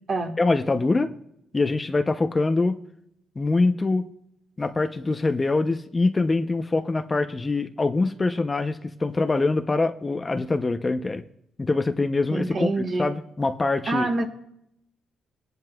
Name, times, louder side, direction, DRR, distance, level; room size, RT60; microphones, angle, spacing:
voice 1, 0.4-1.1 1.5-2.8 3.4-4.0 4.6-11.2 11.6-12.7 13.0-14.1, left 3 dB, 25° left, 8 dB, 0.6 m, -24 dB
voice 2, 12.3-13.1 13.9-14.2, right 2 dB, 45° right, 4 dB, 1.5 m, -26 dB
18.5 x 11.0 x 2.3 m, 0.76 s
cardioid pair, 90°, 0 cm